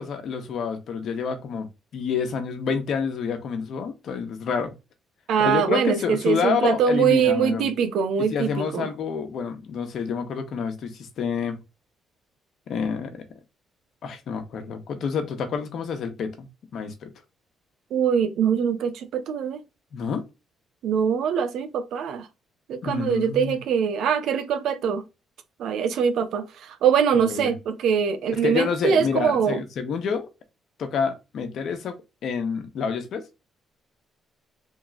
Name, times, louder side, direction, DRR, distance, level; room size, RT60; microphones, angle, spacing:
voice 1, 0.0-4.7 5.4-7.7 8.3-11.6 12.7-13.2 14.0-17.1 19.9-20.2 22.8-23.6 27.1-27.5 28.4-30.3 30.8-31.9 32.2-33.3, left 6 dB, 70° left, 1.2 m, -28 dB
voice 2, 5.3-8.9 17.9-19.6 20.8-22.3 22.7-25.0 25.6-26.4 26.8-29.6, right 7 dB, 80° right, 0.6 m, -23 dB
3.7 x 3.0 x 3.8 m
cardioid pair, 90°, 0 cm